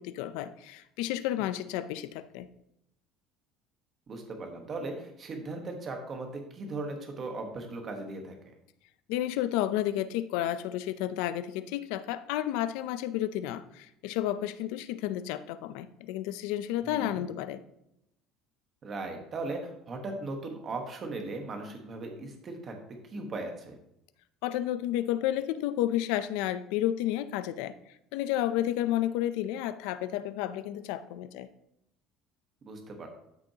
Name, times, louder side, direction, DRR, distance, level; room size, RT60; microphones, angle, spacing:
voice 1, 0.0-2.5 9.1-17.6 24.4-27.7 28.1-31.5, left 12 dB, 80° left, 13 dB, 0.5 m, -31 dB
voice 2, 4.1-8.3 16.8-17.2 18.8-23.8 32.6-33.1, right 2 dB, 30° right, 3 dB, 1.4 m, -38 dB
13.0 x 6.1 x 2.9 m, 0.79 s
cardioid pair, 165°, 0 cm